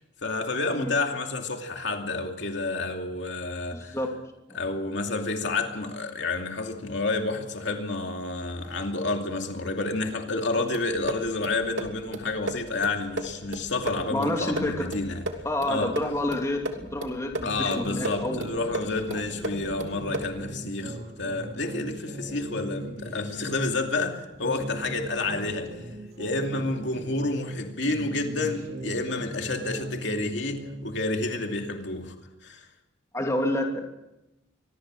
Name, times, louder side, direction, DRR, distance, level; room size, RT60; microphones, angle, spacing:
voice 1, 0.2-4.0 4.5-15.2 15.7-15.9 17.4-25.7 26.2-32.1 32.4-32.7, left 2 dB, 65° left, 3 dB, 2.6 m, -29 dB
voice 2, 3.7-4.1 4.5-4.6 14.1-14.9 15.4-18.6 19.1-19.2 33.1-33.8, left 1 dB, 15° left, 2 dB, 2.8 m, -29 dB
sound 1, 10.7-20.5, right 1 dB, 90° right, 2.9 m, -36 dB
sound 2, 17.4-23.9 24.3-27.6 27.8-31.0, right 1 dB, 50° right, 4.3 m, -39 dB
25.0 x 20.5 x 6.4 m, 0.94 s
head